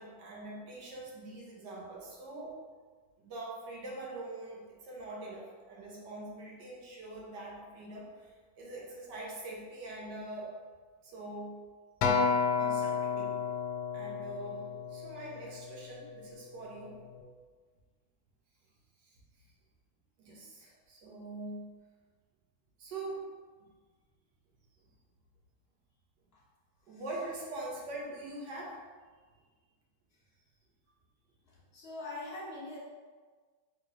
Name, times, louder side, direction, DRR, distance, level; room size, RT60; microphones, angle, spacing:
voice 1, 0.0-2.5 3.2-10.5 11.0-11.6 12.6-13.4 13.9-17.0 19.0-19.2 20.2-21.7 22.8-23.2 23.6-23.7 26.9-28.8, right 2 dB, 60° right, -3 dB, 1.4 m, -43 dB
Acoustic guitar, 12.0-16.4 17.1-17.2, left 5 dB, 90° left, 1.5 m, -32 dB
voice 2, 31.7-32.8, left 2 dB, 40° left, -5 dB, 1.0 m, -41 dB
3.8 x 2.9 x 4.6 m, 1.5 s
omnidirectional pair, 2.3 m